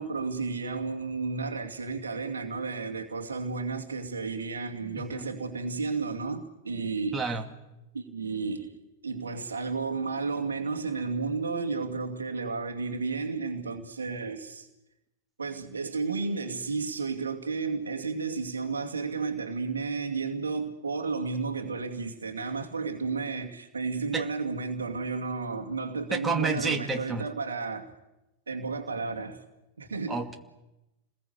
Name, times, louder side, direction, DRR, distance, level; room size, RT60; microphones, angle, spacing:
voice 1, 0.0-7.2 7.9-14.7 15.4-27.9 28.5-29.4 29.8-30.2, right 4 dB, 75° right, 2.4 m, -32 dB
voice 2, 4.8-5.2 7.1-7.5 24.1-24.2 26.1-27.3 30.1-30.4, right 4 dB, 15° right, 2.3 m, -30 dB
29.5 x 21.0 x 8.2 m
figure-of-eight pair, 90°, 0 cm